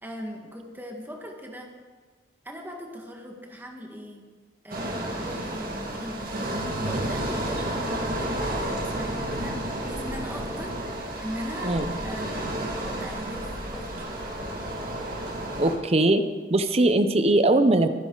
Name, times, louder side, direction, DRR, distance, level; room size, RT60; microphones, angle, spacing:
voice 1, 0.0-1.7 2.4-4.2 4.6-10.8 11.2-11.7 12.0-14.2, equal, 10° right, 1 dB, 1.7 m, -40 dB
sound 1, 4.7-15.8, right 1 dB, 50° right, 2.0 m, -31 dB
Keyboard (musical), 8.6-10.6, right 7 dB, 70° right, 2.4 m, -46 dB
voice 2, 15.6-16.2 16.5-17.9, right 2 dB, 30° right, 9 dB, 0.7 m, -20 dB
22.5 x 10.5 x 4.0 m, 1.5 s
head